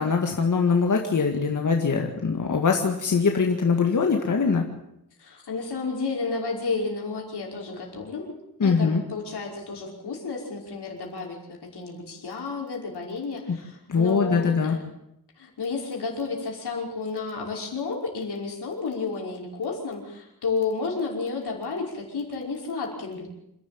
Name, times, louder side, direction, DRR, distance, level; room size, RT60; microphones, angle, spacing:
voice 1, 0.0-4.6 8.6-9.0 13.9-14.8, left 5 dB, 50° left, 3 dB, 2.0 m, -22 dB
voice 2, 5.2-8.3 8.6-14.8 15.4-23.3, left 4 dB, 85° left, -1 dB, 5.5 m, -31 dB
27.5 x 12.0 x 8.8 m, 0.82 s
wide cardioid pair, 115°, 38 cm